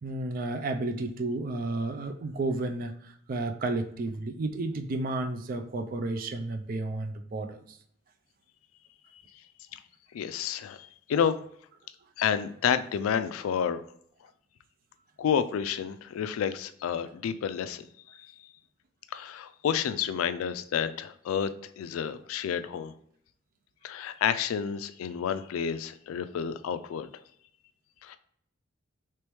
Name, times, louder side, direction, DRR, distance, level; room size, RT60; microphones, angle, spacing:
voice 1, 0.0-7.8, right 2 dB, 45° right, 6 dB, 0.4 m, -32 dB
voice 2, 10.1-11.4 12.2-13.8 15.2-18.3 19.1-21.5 21.8-22.9 23.8-27.2 28.0-28.2, left 8 dB, 80° left, 12 dB, 0.3 m, -30 dB
3.0 x 3.0 x 3.3 m, 0.67 s
head